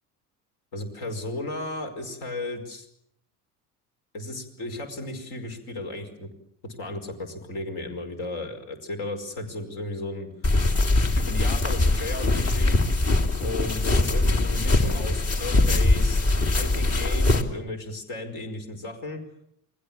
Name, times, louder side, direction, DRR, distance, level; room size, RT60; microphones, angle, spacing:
voice 1, 0.7-2.9 4.1-6.3 6.6-10.3 11.1-12.8 13.4-16.2 16.5-19.2, left 2 dB, 50° left, 5 dB, 5.1 m, -34 dB
sound 1, 10.4-17.4, left 2 dB, 30° left, 2.9 m, -22 dB
29.0 x 21.0 x 7.3 m, 0.74 s
figure-of-eight pair, 65°, 46 cm